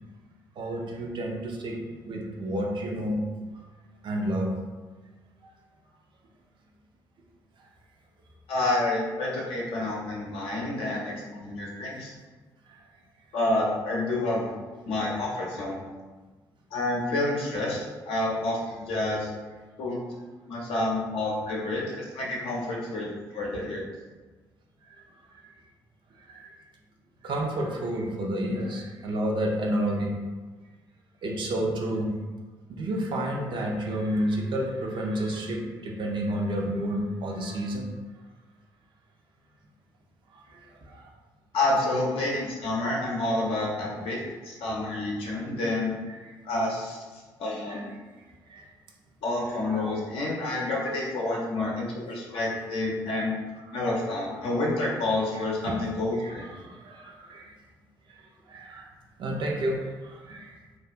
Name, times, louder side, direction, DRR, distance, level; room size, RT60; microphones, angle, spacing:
voice 1, 0.6-3.4 4.0-4.6 10.9-11.0 24.9-25.0 25.4-25.5 26.2-26.5 27.2-30.2 31.2-32.1 32.7-37.9 40.3-41.0 46.2-46.3 47.7-47.8 48.5-48.7 49.5-49.6 53.7-54.0 55.3-55.8 56.2-57.6 58.1-58.2 58.5-58.9 59.2-60.6, right 1 dB, 50° right, 0 dB, 0.5 m, -30 dB
voice 2, 8.5-12.1 13.3-14.5 14.9-15.8 16.7-17.8 18.1-19.3 19.8-20.0 20.5-23.9 41.5-44.2 44.4-45.9 46.4-47.0 47.4-47.9 49.2-53.3 53.7-56.5, left 2 dB, 60° left, -3 dB, 0.6 m, -28 dB
2.4 x 2.3 x 2.4 m, 1.3 s
figure-of-eight pair, 45°, 11 cm